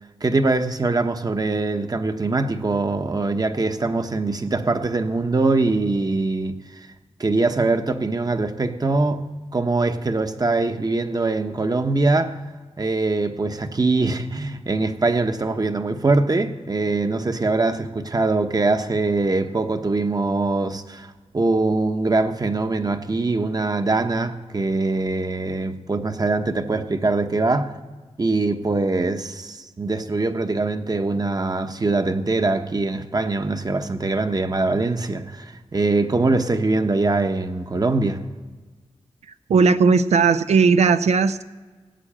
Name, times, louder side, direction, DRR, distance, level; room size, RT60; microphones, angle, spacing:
voice 1, 0.2-6.9 7.2-9.2 9.5-12.4 12.8-27.8 28.2-38.2, right 3 dB, 35° right, 1.1 m, -22 dB
voice 2, 39.5-41.4, right 5 dB, 80° right, 0.6 m, -17 dB
17.0 x 6.5 x 8.7 m
cardioid pair, 60°, 11 cm